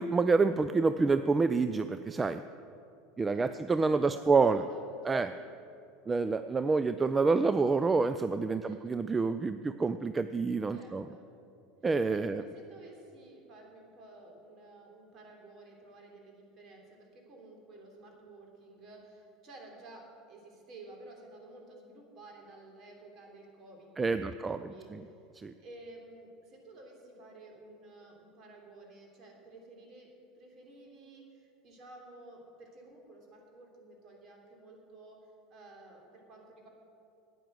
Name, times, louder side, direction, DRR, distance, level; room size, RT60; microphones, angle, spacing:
voice 1, 0.0-2.4 3.2-4.6 5.0-5.3 6.1-11.0 11.8-12.4 24.0-25.0 25.4-25.5, right 4 dB, 20° right, 11 dB, 0.4 m, -28 dB
voice 2, 3.3-5.6 8.5-8.9 10.7-11.3 12.1-25.1 25.6-30.1 30.4-36.7, right 2 dB, 45° right, 1 dB, 3.2 m, -53 dB
10.0 x 9.4 x 7.7 m, 2.6 s
hypercardioid pair, 85°, 0 cm